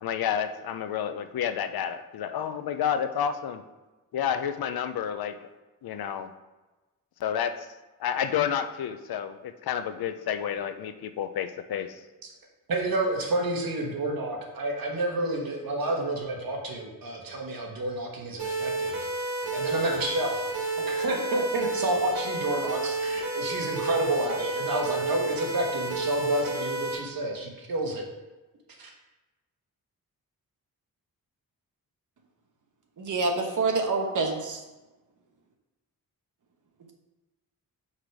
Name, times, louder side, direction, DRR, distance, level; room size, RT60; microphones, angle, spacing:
voice 1, 0.0-3.6 4.1-5.3 5.8-6.3 7.2-7.7 8.0-11.9, left 8 dB, 80° left, 10 dB, 0.6 m, -30 dB
voice 2, 12.7-28.0 28.8-28.9, right 2 dB, 70° right, 0 dB, 1.5 m, -30 dB
sound 1, 18.4-26.9, right 2 dB, 90° right, 2.3 m, -30 dB
voice 3, 33.0-34.6, right 3 dB, 55° right, 3 dB, 1.1 m, -27 dB
5.8 x 4.9 x 4.6 m, 1.1 s
wide cardioid pair, 115°, 36 cm